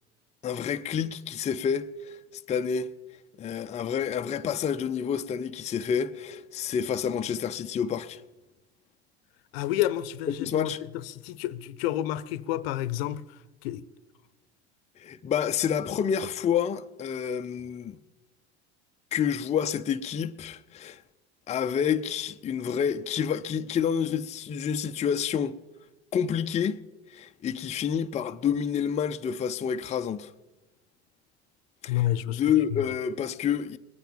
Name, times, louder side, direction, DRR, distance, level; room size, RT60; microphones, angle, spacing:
voice 1, 0.4-2.2 2.5-2.9 3.4-8.2 10.4-10.8 15.0-18.0 19.1-21.0 21.5-25.6 26.1-26.8 27.1-30.3 31.8-33.8, left 8 dB, 20° left, 0.5 m, -28 dB
voice 2, 9.5-13.9 31.9-32.4, left 13 dB, 60° left, 0.7 m, -30 dB
20.5 x 9.1 x 7.2 m
hypercardioid pair, 80°, 34 cm